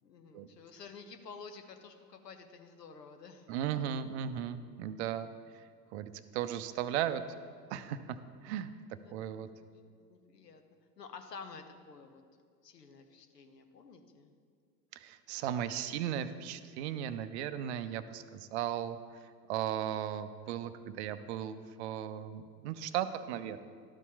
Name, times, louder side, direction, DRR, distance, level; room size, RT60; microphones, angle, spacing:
voice 1, 0.0-3.5 9.0-10.6 11.0-12.2 12.6-14.3, left 5 dB, 85° left, 7 dB, 0.9 m, -51 dB
voice 2, 3.5-5.3 5.9-7.2 7.7-8.2 8.4-8.7 9.1-9.5 14.9-19.0 19.5-23.6, right 10 dB, 45° right, 12 dB, 0.5 m, -36 dB
12.0 x 4.2 x 4.7 m, 2.1 s
figure-of-eight pair, 90°, 47 cm